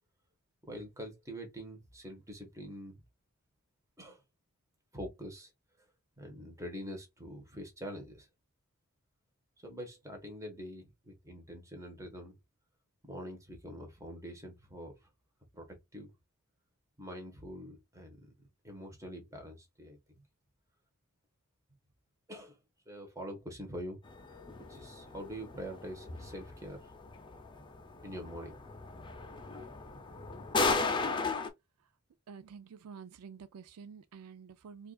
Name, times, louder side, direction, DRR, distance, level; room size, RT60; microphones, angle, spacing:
voice 1, 0.6-3.0 4.0-4.2 4.9-5.5 6.2-8.3 9.6-12.3 13.0-15.1 15.5-16.1 17.0-18.3 18.6-20.0 22.3-22.6 22.9-24.0 24.3-24.4 24.7-26.9 28.0-28.6, equal, 15° right, 1.2 m, -45 dB
sound 1, 24.1-31.5, left 4 dB, 20° left, 0.6 m, -36 dB
voice 2, 32.3-34.9, right 6 dB, 80° right, 0.4 m, -49 dB
4.6 x 2.5 x 2.3 m
head